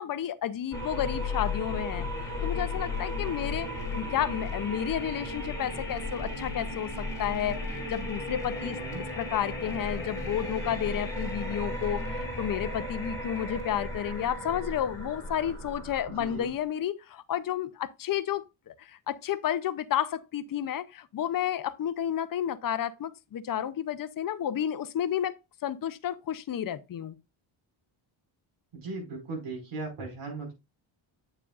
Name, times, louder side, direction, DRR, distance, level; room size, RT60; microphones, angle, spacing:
voice 1, 0.0-3.7 3.9-8.8 9.2-25.3 25.6-27.2, left 10 dB, 45° left, 0.6 m, -31 dB
sound 1, 0.7-16.6, left 2 dB, 5° left, 1.8 m, -35 dB
voice 2, 8.6-9.1 16.1-16.5 28.7-30.5, right 3 dB, 85° right, 5.2 m, -38 dB
8.7 x 7.0 x 2.4 m
wide cardioid pair, 175°, 49 cm